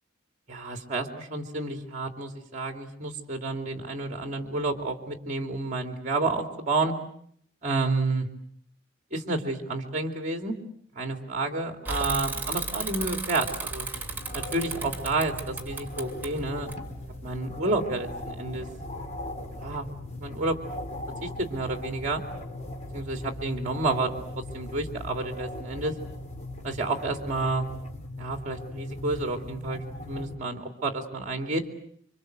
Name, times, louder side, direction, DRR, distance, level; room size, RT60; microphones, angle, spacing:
voice 1, 0.5-6.9 7.6-8.3 9.1-10.5 11.0-13.9 14.3-16.7 17.2-18.7 19.6-19.9 20.2-20.5 21.2-22.2 22.9-24.1 24.5-25.9 26.6-27.7 28.2-29.8 30.1-31.6, right 2 dB, 40° right, 5 dB, 2.8 m, -30 dB
Bicycle / Mechanisms, 11.8-17.3, right 3 dB, 10° right, 2.6 m, -35 dB
sound 1, 13.9-30.3, left 1 dB, 35° left, 3.1 m, -39 dB
27.5 x 25.0 x 7.9 m, 0.66 s
head